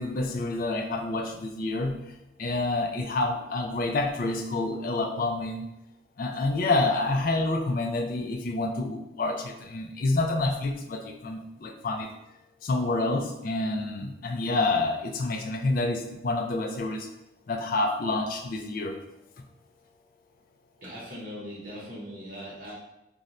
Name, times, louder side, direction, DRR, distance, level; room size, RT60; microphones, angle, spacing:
voice 1, 0.0-5.7 6.2-12.1 12.6-17.1 17.5-19.0 19.4-19.5, left 2 dB, 45° left, 5 dB, 0.3 m, -28 dB
voice 2, 20.8-22.7, equal, 45° right, -8 dB, 0.7 m, -40 dB
2.5 x 2.1 x 3.9 m, 0.90 s
head